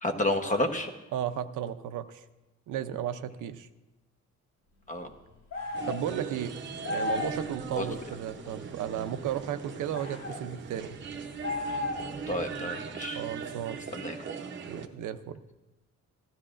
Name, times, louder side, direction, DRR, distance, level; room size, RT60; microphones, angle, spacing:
voice 1, 0.0-0.9 4.9-5.1 7.7-7.9 12.3-13.2 13.9-14.1, left 1 dB, 25° left, 5 dB, 0.9 m, -30 dB
voice 2, 1.1-2.2 2.7-3.7 5.9-6.6 6.9-11.0 13.1-13.8 14.7-15.4, right 10 dB, 80° right, 10 dB, 0.6 m, -34 dB
sound 1, 5.5-6.0 6.8-7.4 9.9-10.4 11.4-12.2, left 3 dB, 65° left, 2.5 m, -33 dB
sound 2, 5.7-14.9, right 6 dB, 40° right, 0.7 m, -40 dB
16.0 x 12.0 x 2.5 m, 1.1 s
cardioid pair, 135°, 31 cm